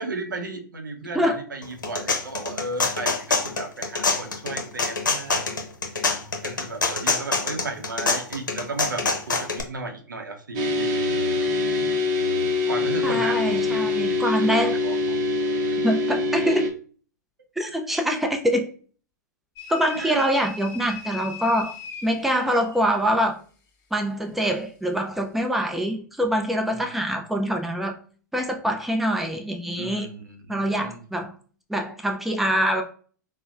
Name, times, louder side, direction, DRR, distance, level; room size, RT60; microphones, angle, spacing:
voice 1, 0.0-5.6 6.4-11.0 12.7-15.0 19.9-20.2 26.7-26.9 29.8-31.0, right 3 dB, 90° right, 5 dB, 0.6 m, -35 dB
sound 1, 1.6-9.6, left 4 dB, 85° left, 0.7 m, -25 dB
sound 2, 10.5-16.7, left 3 dB, 40° right, 0.7 m, -24 dB
voice 2, 13.0-14.8 15.8-16.7 17.6-18.7 19.7-21.7 22.0-23.4 23.9-28.0 28.3-30.2 30.5-31.3 31.7-32.8, equal, ahead, 3 dB, 0.4 m, -24 dB
sound 3, 19.6-22.9, left 6 dB, 35° left, 0.9 m, -39 dB
4.1 x 2.0 x 2.3 m, 0.41 s
hypercardioid pair, 110°, 10 cm